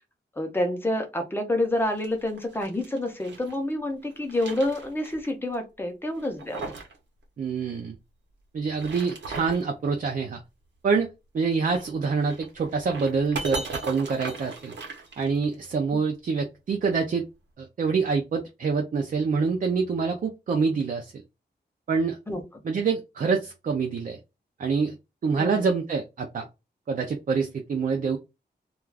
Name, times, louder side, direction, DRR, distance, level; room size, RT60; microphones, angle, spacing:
voice 1, 0.4-6.7 22.3-22.4 25.4-25.6, left 1 dB, 10° left, 4 dB, 0.6 m, -28 dB
sound 1, 1.8-3.6 4.0-5.3 5.5-5.6 6.1-7.0 7.2-7.3 8.6-9.7 11.6-15.7, right 4 dB, 85° right, 0.8 m, -38 dB
voice 2, 7.4-8.0 8.5-10.4 10.8-14.7 15.2-17.2 17.6-21.1 21.9-22.2 22.6-24.2 24.6-25.0 25.2-26.5 26.9-28.2, right 5 dB, 50° right, 3 dB, 0.4 m, -26 dB
2.3 x 2.3 x 3.2 m, 0.25 s
wide cardioid pair, 175°, 18 cm